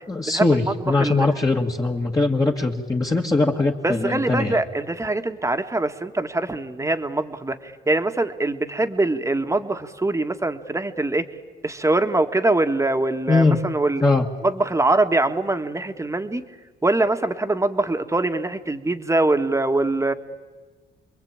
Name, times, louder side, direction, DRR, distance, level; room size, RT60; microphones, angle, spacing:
voice 1, 0.1-4.6 13.3-13.6 14.0-14.3, left 3 dB, 20° left, 0 dB, 2.0 m, -21 dB
voice 2, 1.0-1.3 3.8-11.2 11.6-14.0 14.4-16.4 16.8-20.1, right 2 dB, 15° right, 7 dB, 1.7 m, -23 dB
28.5 x 22.0 x 8.9 m, 1.3 s
cardioid pair, 90°, 20 cm